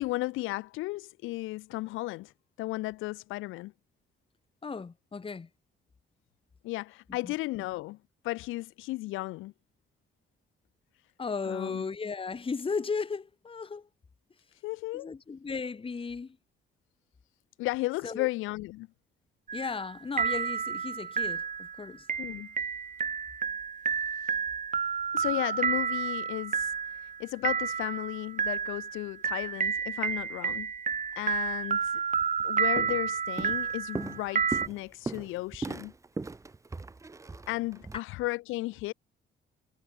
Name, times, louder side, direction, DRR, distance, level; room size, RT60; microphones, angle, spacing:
voice 1, 0.0-2.3 2.6-3.7 6.6-8.0 8.2-9.5 11.5-11.8 14.6-15.1 17.6-18.9 22.2-22.5 25.1-26.7 27.2-30.7 31.2-32.0 32.4-35.9 37.5-38.9, left 19 dB, 90° left, 0.4 m, -34 dB
voice 2, 4.6-5.5 7.2-7.7 11.2-13.9 14.9-16.4 18.0-18.3 19.5-22.1, left 5 dB, 25° left, 1.3 m, -36 dB
Strange Lullaby, 19.5-19.9 20.2-34.7, right 6 dB, 40° right, 1.6 m, -31 dB
Walk footsteps, 32.2-32.4 32.8-33.1 33.4-38.0, right 3 dB, 15° right, 0.6 m, -38 dB
cardioid pair, 90°, 20 cm